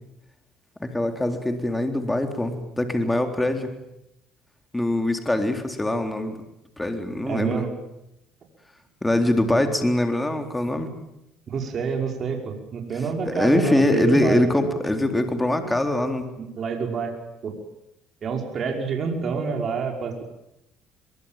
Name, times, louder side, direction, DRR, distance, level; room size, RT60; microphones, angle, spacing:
voice 1, 0.8-3.7 4.7-6.4 6.8-7.7 9.0-10.9 13.3-16.3, left 1 dB, 10° left, 6 dB, 3.8 m, -23 dB
voice 2, 7.3-7.7 11.5-14.4 15.6-15.7 16.4-17.6 18.2-20.2, right 5 dB, 45° right, 3 dB, 5.5 m, -28 dB
23.5 x 23.0 x 9.1 m, 0.86 s
supercardioid pair, 90°, 0 cm